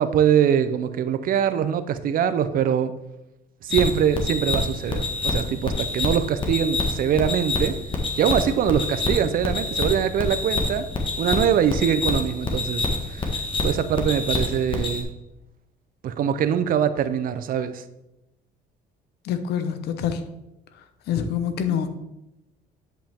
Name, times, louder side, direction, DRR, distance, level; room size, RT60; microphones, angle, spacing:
voice 1, 0.0-2.9 3.6-7.7 8.2-10.9 11.2-13.3 13.6-15.1 16.0-17.8, right 8 dB, 55° right, 11 dB, 0.6 m, -23 dB
sound 1, 3.7-15.0, left 2 dB, 30° left, 1.4 m, -27 dB
voice 2, 19.2-20.3 21.1-21.9, left 8 dB, 75° left, 9 dB, 0.9 m, -26 dB
10.0 x 5.2 x 3.5 m, 0.91 s
cardioid pair, 110°, 17 cm